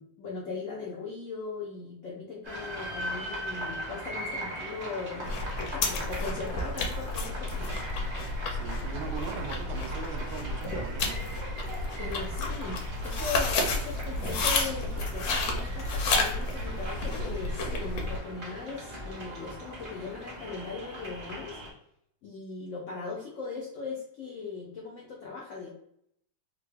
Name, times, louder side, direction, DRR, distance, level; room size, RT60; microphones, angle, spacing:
voice 1, 0.0-7.8 12.0-21.6 22.2-25.7, left 4 dB, 90° left, -2 dB, 0.6 m, -39 dB
sound 1, 2.4-21.7, equal, 40° right, 0.7 m, -40 dB
sound 2, 5.2-18.2, left 2 dB, 70° left, 1.0 m, -31 dB
voice 2, 8.5-11.3, right 6 dB, 90° right, 5 dB, 1.4 m, -40 dB
3.7 x 2.0 x 3.3 m, 0.72 s
omnidirectional pair, 2.1 m